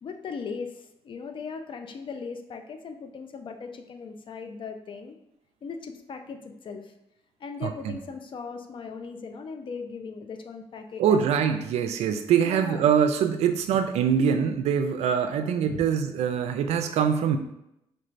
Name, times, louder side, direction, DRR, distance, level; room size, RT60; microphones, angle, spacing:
voice 1, 0.0-5.1 5.6-6.9 7.4-11.2 12.4-12.9 13.7-13.8 15.6-15.8, left 5 dB, 50° left, 6 dB, 0.5 m, -38 dB
voice 2, 7.6-7.9 11.0-17.4, right 7 dB, 85° right, 8 dB, 0.4 m, -24 dB
4.4 x 3.2 x 2.5 m, 0.83 s
cardioid pair, 85°, 11 cm